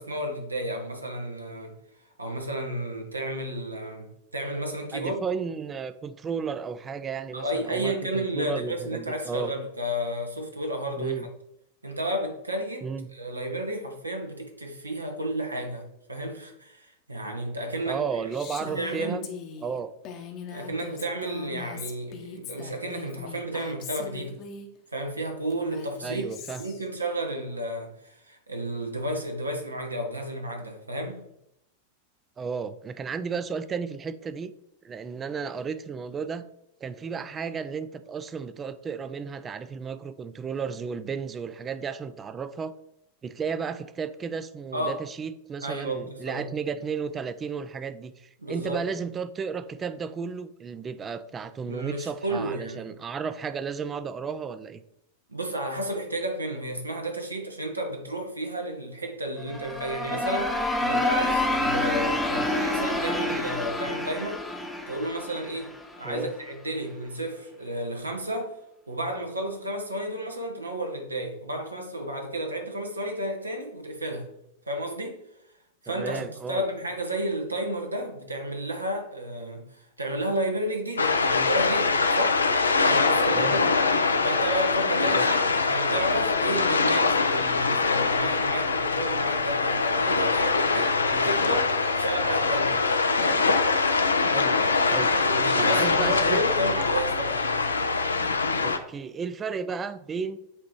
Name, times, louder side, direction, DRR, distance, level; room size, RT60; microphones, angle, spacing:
voice 1, 0.0-1.8 2.2-5.2 7.3-11.3 11.8-18.0 18.6-19.2 20.5-24.4 24.9-26.3 26.6-31.2 44.7-45.0 45.6-46.5 48.4-48.8 51.7-52.8 55.3-64.4 64.9-65.7 66.0-68.6 68.9-74.3 74.7-75.2 75.8-82.4 82.8-83.6 84.2-85.4 85.7-92.8 93.2-93.6 95.2-97.5, right 1 dB, 80° right, 1.1 m, -32 dB
voice 2, 4.9-9.5 11.0-11.3 12.8-13.1 17.8-19.3 19.6-19.9 26.0-26.6 32.4-34.5 34.8-36.5 36.8-42.7 43.2-54.8 66.0-66.3 75.9-76.7 83.3-83.6 85.1-85.3 94.3-94.6 94.9-95.1 95.6-96.4 98.6-100.4, right 6 dB, 20° right, 0.4 m, -33 dB
Female speech woman speaking, 18.3-24.7 25.5-26.9, left 6 dB, 40° left, 0.9 m, -41 dB
sound 1, 59.4-66.2, left 1 dB, 5° left, 0.9 m, -28 dB
sound 2, 81.0-98.8, left 4 dB, 75° left, 0.5 m, -23 dB
7.7 x 3.0 x 4.6 m
figure-of-eight pair, 90°, 0 cm